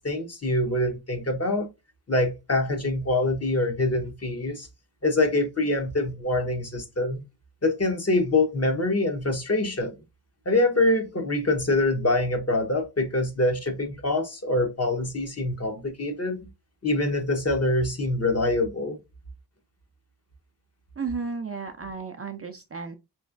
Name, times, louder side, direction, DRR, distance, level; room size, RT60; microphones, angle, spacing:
voice 1, 0.0-1.7 2.1-4.7 5.0-7.2 7.6-9.9 10.4-16.5 16.8-19.0, left 2 dB, 35° left, 1.1 m, -25 dB
voice 2, 21.0-23.0, right 4 dB, 30° right, 0.5 m, -33 dB
3.5 x 3.1 x 2.5 m
cardioid pair, 65°, 45 cm